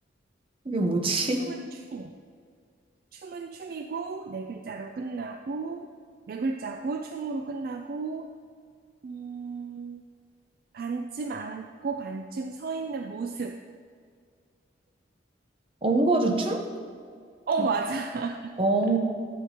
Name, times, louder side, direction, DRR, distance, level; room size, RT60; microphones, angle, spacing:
voice 1, 0.6-1.5 15.8-16.6 18.6-19.0, right 2 dB, 30° right, 4 dB, 0.7 m, -24 dB
voice 2, 1.4-2.1 3.1-5.9 6.3-8.3 9.0-10.0 10.7-13.6 17.5-18.5, right 4 dB, 50° right, 5 dB, 0.3 m, -33 dB
11.5 x 7.5 x 2.8 m, 2.1 s
head